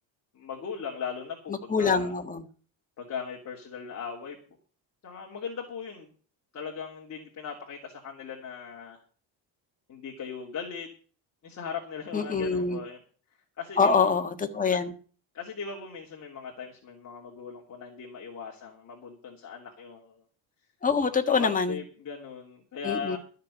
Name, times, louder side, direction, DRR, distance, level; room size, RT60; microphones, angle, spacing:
voice 1, 0.3-2.1 3.0-4.4 5.0-6.1 6.5-9.0 9.9-10.9 11.4-13.0 13.6-14.1 14.7-14.8 15.3-20.2 21.3-23.2, left 6 dB, 35° left, 2.9 m, -38 dB
voice 2, 1.7-2.4 12.1-12.8 13.8-14.9 20.8-21.8 22.8-23.2, left 5 dB, 15° left, 1.5 m, -25 dB
13.0 x 6.7 x 8.3 m
cardioid pair, 145°, 46 cm